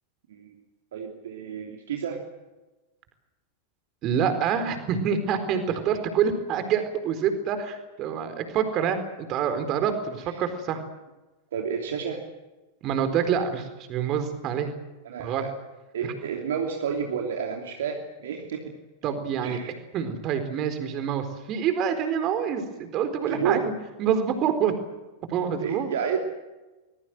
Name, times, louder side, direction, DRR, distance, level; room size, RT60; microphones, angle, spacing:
voice 1, 0.3-0.6 0.9-2.2 11.5-12.2 15.0-15.5 15.9-18.7 19.4-19.7 23.3-23.7 25.6-26.2, right 7 dB, 60° right, 2 dB, 2.9 m, -30 dB
voice 2, 4.0-10.8 12.8-14.7 15.2-15.4 19.0-19.6 19.9-23.7 24.0-24.7 25.3-25.9, right 7 dB, 35° right, 9 dB, 4.2 m, -26 dB
24.5 x 21.5 x 7.8 m, 1.1 s
figure-of-eight pair, 90°, 0 cm